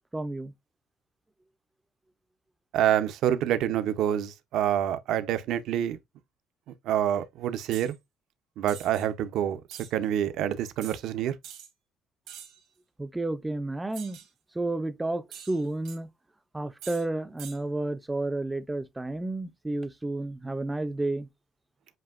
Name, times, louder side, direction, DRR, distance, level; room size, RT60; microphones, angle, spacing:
voice 1, 0.1-0.5 13.0-14.2 14.5-16.1 16.5-21.3, right 2 dB, 10° right, 0.5 m, -31 dB
voice 2, 2.7-6.0 6.9-7.9 8.6-9.6 9.9-11.3, right 10 dB, 70° right, 0.6 m, -27 dB
sound 1, 7.7-7.9 8.7-9.1 9.7-9.9 10.8-11.0 11.4-11.7 12.3-12.6 13.9-14.3 15.3-16.0 16.8-17.1 17.4-17.6, right 10 dB, 85° right, 1.6 m, -45 dB
7.5 x 2.7 x 2.4 m
cardioid pair, 135°, 0 cm